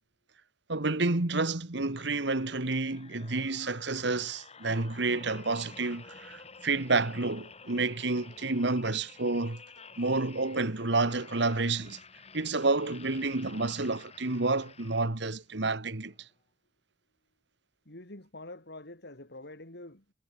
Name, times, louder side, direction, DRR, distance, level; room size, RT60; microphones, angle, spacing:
voice 1, 0.7-9.6 10.0-12.0 12.3-16.1, right 3 dB, 65° right, 1.7 m, -29 dB
sound 1, 1.9-15.5 16.0-16.2, left 4 dB, 35° left, 6.5 m, -51 dB
voice 2, 17.9-20.1, left 2 dB, 60° left, 4.0 m, -46 dB
head